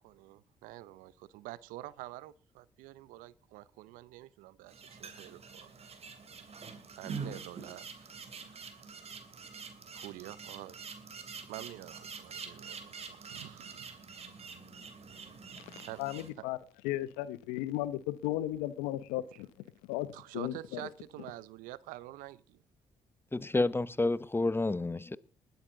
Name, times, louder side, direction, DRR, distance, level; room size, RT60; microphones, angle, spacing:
voice 1, 0.0-5.7 7.0-8.1 8.4-9.1 9.9-10.8 11.4-13.9 15.8-16.0 16.4-16.5 20.1-22.6, right 16 dB, 75° right, 0.6 m, -47 dB
sound 1, 4.7-16.3, right 5 dB, 45° right, 2.9 m, -46 dB
voice 2, 16.0-16.6 16.8-19.5 19.9-20.1 20.3-20.8, left 15 dB, 80° left, 0.9 m, -35 dB
voice 3, 23.3-25.2, left 2 dB, 15° left, 0.9 m, -29 dB
20.5 x 9.2 x 3.8 m
hypercardioid pair, 50°, 14 cm